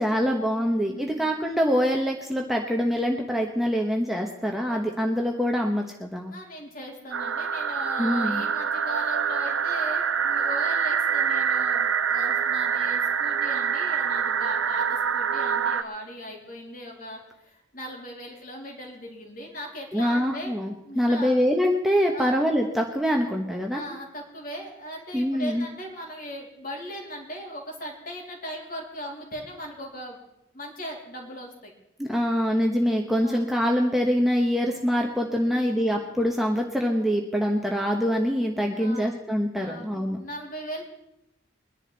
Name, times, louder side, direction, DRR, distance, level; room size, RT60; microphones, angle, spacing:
voice 1, 0.0-6.3 8.0-8.4 19.9-23.9 25.1-25.7 32.0-40.2, equal, ahead, 0 dB, 1.1 m, -24 dB
voice 2, 0.6-1.4 4.7-4.8 6.3-20.5 20.8-21.4 22.1-22.4 23.7-30.2 30.5-31.7 33.2-33.4 35.4-35.7 38.8-39.2 39.6-40.8, equal, 45° left, -1 dB, 3.3 m, -39 dB
sound 1, 7.1-15.8, right 7 dB, 85° right, 0.7 m, -25 dB
22.0 x 11.0 x 4.1 m, 0.87 s
head